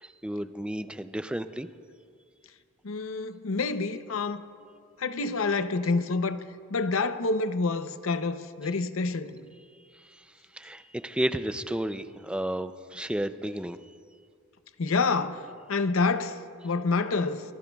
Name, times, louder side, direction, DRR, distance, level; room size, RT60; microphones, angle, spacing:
voice 1, 0.0-1.7 10.1-10.2 10.5-13.8, right 1 dB, 5° right, 0.4 m, -32 dB
voice 2, 2.8-4.4 5.0-6.4 6.7-9.5 14.8-15.4 15.7-17.4, left 3 dB, 75° left, 0.6 m, -28 dB
23.5 x 18.5 x 2.3 m
head